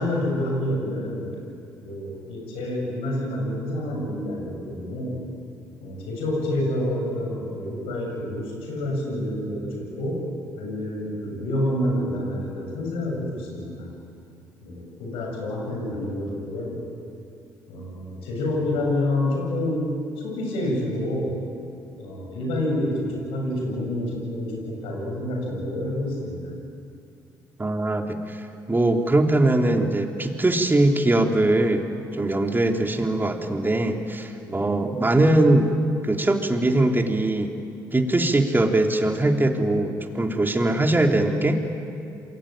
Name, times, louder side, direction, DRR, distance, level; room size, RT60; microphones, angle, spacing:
voice 1, 0.0-1.4 1.8-5.2 5.8-10.2 10.5-14.0 14.6-16.8 17.7-19.9 20.2-21.4 22.0-26.6 34.4-34.7, left 1 dB, 75° left, 0 dB, 7.7 m, -28 dB
voice 2, 27.6-28.4 28.7-31.9 32.1-35.7 36.0-37.5 37.9-41.6, right 2 dB, 20° right, 3 dB, 3.4 m, -21 dB
28.0 x 22.5 x 9.1 m, 2.6 s
hypercardioid pair, 50°, 9 cm